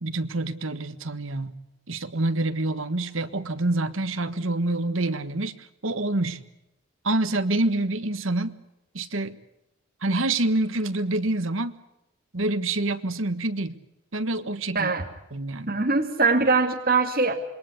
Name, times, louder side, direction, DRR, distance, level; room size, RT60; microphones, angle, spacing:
voice 1, 0.0-1.6 1.9-5.5 5.8-6.4 7.0-8.5 8.9-9.3 10.0-11.7 12.3-13.7 14.1-14.9 15.3-15.7, right 2 dB, 75° right, 10 dB, 1.6 m, -26 dB
voice 2, 14.7-15.1 15.7-17.3, right 4 dB, 45° right, 2 dB, 2.4 m, -22 dB
27.0 x 22.5 x 8.2 m, 0.90 s
head